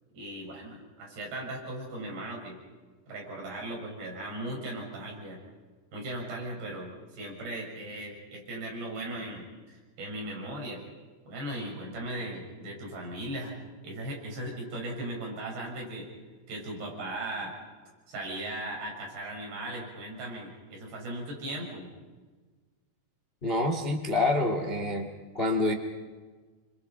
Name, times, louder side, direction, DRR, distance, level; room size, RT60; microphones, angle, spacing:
voice 1, 0.1-2.6 3.1-5.4 5.9-10.8 11.2-13.5 13.8-16.1 16.5-17.6 18.1-21.9, right 1 dB, 70° right, -1 dB, 8.9 m, -38 dB
voice 2, 23.4-25.1 25.3-25.7, left 2 dB, 55° left, 4 dB, 0.6 m, -27 dB
28.0 x 25.0 x 5.7 m, 1.3 s
omnidirectional pair, 5.1 m